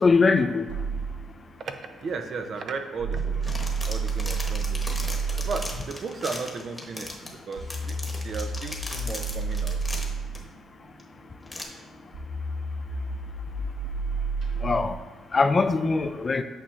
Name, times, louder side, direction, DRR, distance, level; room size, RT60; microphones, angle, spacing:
voice 1, 0.0-0.7 14.6-14.9 15.3-16.4, left 4 dB, 35° left, 9 dB, 0.4 m, -21 dB
sound 1, 0.7-5.8 7.6-15.0, right 4 dB, 85° right, 1.6 m, -31 dB
voice 2, 1.6-3.6 3.8-5.0 5.4-9.8, right 4 dB, 55° right, 6 dB, 0.6 m, -35 dB
sound 2, 3.2-10.4 11.0-11.1 11.5-11.6, left 2 dB, 20° left, 1.1 m, -38 dB
8.7 x 5.5 x 2.5 m, 1.4 s
cardioid pair, 90°, 0 cm